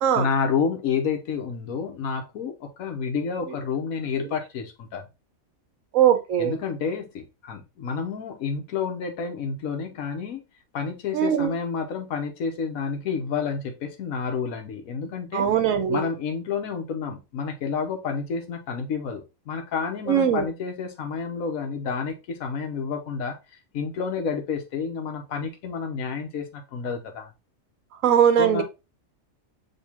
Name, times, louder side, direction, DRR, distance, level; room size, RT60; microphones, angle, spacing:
voice 1, 0.1-5.0 6.4-10.4 10.7-15.5 15.9-23.4 23.7-27.3 28.4-28.6, left 5 dB, 85° left, 1.3 m, -29 dB
voice 2, 5.9-6.5 11.1-11.5 15.3-16.0 20.1-20.4 28.0-28.6, right 9 dB, 75° right, 1.1 m, -20 dB
6.6 x 2.8 x 2.9 m
omnidirectional pair, 1.4 m